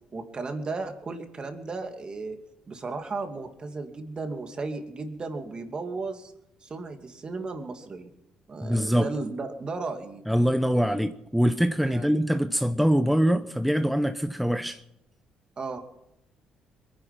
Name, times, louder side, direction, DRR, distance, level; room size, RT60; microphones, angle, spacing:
voice 1, 0.1-2.4 2.7-6.3 6.6-8.1 8.5-10.2 10.7-11.0 11.8-12.1 15.6-15.8, right 3 dB, 40° right, 2.7 m, -35 dB
voice 2, 8.6-9.1 10.3-14.8, equal, ahead, 0.8 m, -24 dB
22.0 x 10.5 x 6.0 m
supercardioid pair, 70°, 2 cm